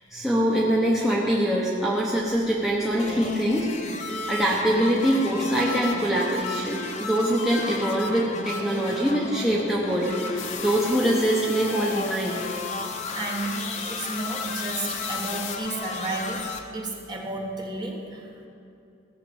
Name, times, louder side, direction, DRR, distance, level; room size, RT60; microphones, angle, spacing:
voice 1, 0.1-3.7 4.3-12.4, right 1 dB, ahead, -5 dB, 1.1 m, -24 dB
sound 1, 3.0-16.6, left 3 dB, 35° left, 0.9 m, -33 dB
sound 2, 10.4-15.6, left 9 dB, 80° left, 0.7 m, -38 dB
voice 2, 13.1-13.6 13.9-18.5, right 2 dB, 20° right, -1 dB, 1.5 m, -32 dB
16.0 x 6.9 x 7.1 m, 2.6 s
head